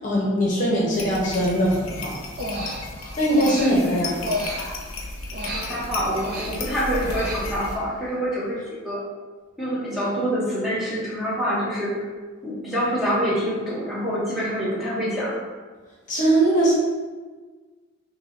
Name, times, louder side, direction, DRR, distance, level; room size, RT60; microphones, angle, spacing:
voice 1, 0.0-2.1 3.2-4.1 16.1-16.7, right 1 dB, 35° left, -5 dB, 0.8 m, -21 dB
sound 1, 0.9-7.8, left 2 dB, 75° left, 0.6 m, -34 dB
Human voice, 2.2-5.0 5.3-7.8, equal, 45° right, 0.5 m, -32 dB
voice 2, 3.6-4.0 5.5-8.6 8.8-9.0 9.6-11.9 12.4-15.4, equal, ahead, -9 dB, 0.8 m, -26 dB
2.7 x 2.7 x 4.2 m, 1.4 s
head